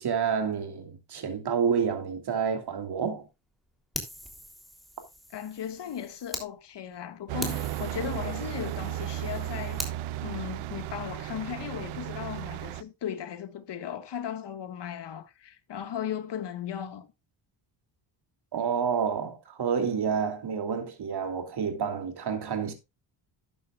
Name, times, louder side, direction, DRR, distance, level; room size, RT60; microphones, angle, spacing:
voice 1, 0.0-3.3 18.5-22.7, right 6 dB, 50° right, 2.9 m, -29 dB
Fire, 3.9-6.5 6.9-7.0 7.4-10.0, equal, ahead, 3.2 m, -41 dB
voice 2, 5.3-10.0 10.2-17.1, left 9 dB, 55° left, 1.8 m, -37 dB
sound 1, 7.3-12.8, right 13 dB, 90° right, 0.7 m, -35 dB
12.5 x 9.2 x 2.4 m
cardioid pair, 105°, 49 cm